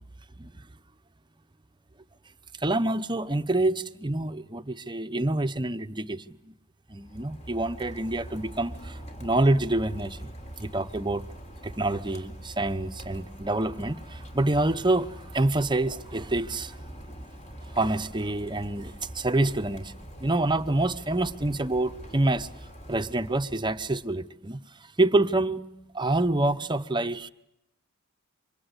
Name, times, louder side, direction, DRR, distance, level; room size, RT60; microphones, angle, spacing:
voice 1, 2.6-6.5 6.9-10.3 10.6-11.2 11.6-16.8 17.7-19.9 20.2-22.5 22.9-24.6 25.0-25.6 25.9-27.3, right 2 dB, 20° right, 1.0 m, -27 dB
Rain, 6.9-24.2, right 1 dB, 35° left, 3.6 m, -44 dB
28.5 x 25.0 x 8.1 m
head